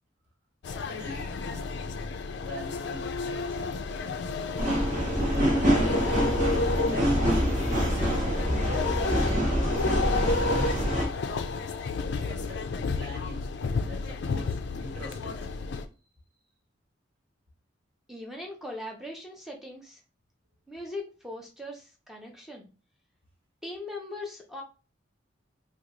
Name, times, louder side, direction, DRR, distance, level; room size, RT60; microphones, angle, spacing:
sound 1, 0.6-15.9, left 3 dB, 60° left, 0.3 m, -31 dB
voice 1, 0.7-1.7 2.4-3.6 4.8-5.2 5.6-7.7 8.6-10.7 12.0-13.5 13.8-15.6, left 1 dB, 55° right, -1 dB, 1.4 m, -44 dB
sound 2, 4.6-11.1, equal, 40° right, 1.1 m, -25 dB
voice 2, 18.1-20.0 20.7-22.7 23.6-24.6, left 1 dB, ahead, 0 dB, 0.7 m, -40 dB
3.0 x 2.2 x 3.6 m, 0.33 s
head